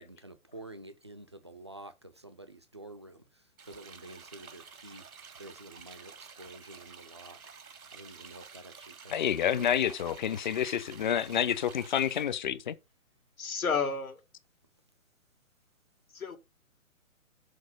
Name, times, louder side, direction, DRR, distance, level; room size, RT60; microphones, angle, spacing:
voice 1, 0.0-3.2 3.7-5.0 5.4-7.4 7.9-10.0 10.3-10.7 11.0-11.8, right 2 dB, 20° right, 0.4 m, -49 dB
sound 1, 3.6-12.4, right 6 dB, 85° right, 1.1 m, -50 dB
voice 2, 9.1-12.8, left 9 dB, 35° left, 0.5 m, -29 dB
voice 3, 13.4-14.2 16.1-16.4, left 5 dB, 80° left, 2.0 m, -31 dB
6.5 x 4.5 x 6.3 m
figure-of-eight pair, 140°, 42 cm